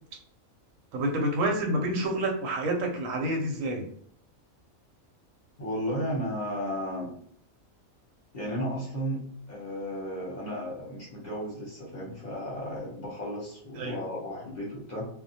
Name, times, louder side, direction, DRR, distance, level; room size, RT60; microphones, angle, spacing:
voice 1, 0.9-3.9 13.8-14.0, right 1 dB, 75° right, 1 dB, 1.0 m, -28 dB
voice 2, 5.6-7.1 8.3-9.2 9.5-15.1, equal, 40° left, -4 dB, 0.7 m, -34 dB
2.3 x 2.1 x 2.6 m, 0.64 s
omnidirectional pair, 1.4 m